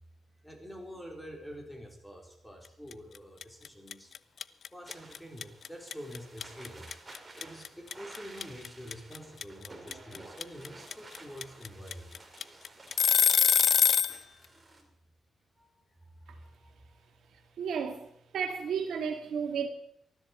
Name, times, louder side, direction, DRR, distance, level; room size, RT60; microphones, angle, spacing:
voice 1, 0.4-4.2 4.7-6.9 7.4-12.6 14.5-14.9 15.6-17.0, equal, 5° left, 3.9 m, -47 dB
sound 1, 2.9-3.2 3.4-14.2, left 7 dB, 60° left, 0.5 m, -25 dB
sound 2, 4.9-14.8, right 2 dB, 25° right, 3.6 m, -52 dB
voice 2, 17.6-18.1 18.3-19.7, right 6 dB, 80° right, 2.1 m, -32 dB
20.0 x 13.5 x 4.4 m
cardioid pair, 90°, 0 cm